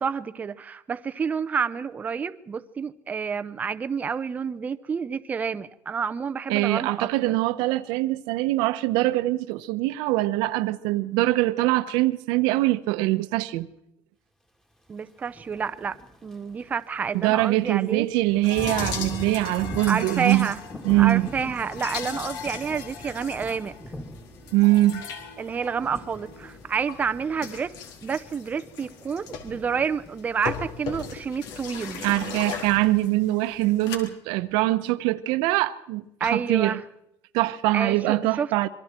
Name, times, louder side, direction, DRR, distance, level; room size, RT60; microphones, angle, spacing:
voice 1, 0.0-7.3 14.9-16.0 16.2-18.1 19.9-20.6 20.9-23.7 25.4-27.7 28.0-32.1 36.2-36.8 37.7-38.5, right 6 dB, 20° right, 0.7 m, -29 dB
voice 2, 6.5-13.7 17.2-20.5 20.8-21.3 24.5-25.0 32.0-36.8 37.3-38.7, right 17 dB, 85° right, 1.1 m, -23 dB
Thunder / Rain, 15.2-33.3, equal, 5° left, 2.4 m, -43 dB
sound 1, 18.4-34.0, left 7 dB, 70° left, 4.1 m, -38 dB
26.5 x 23.5 x 4.5 m
cardioid pair, 160°, 8 cm